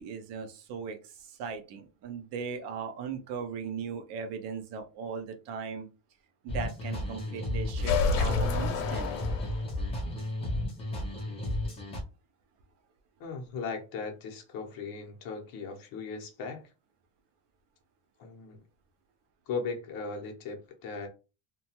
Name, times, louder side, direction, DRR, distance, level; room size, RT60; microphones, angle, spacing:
voice 1, 0.0-5.9 6.4-9.2, right 6 dB, 55° right, 0.7 m, -38 dB
sound 1, 6.5-12.0, left 1 dB, 15° left, 0.3 m, -33 dB
sound 2, 7.8-9.9, left 4 dB, 70° left, 0.8 m, -29 dB
voice 2, 13.2-16.7 18.2-18.6 19.5-21.1, left 4 dB, 45° left, 0.7 m, -38 dB
2.7 x 2.2 x 2.8 m
cardioid pair, 165°, 50 cm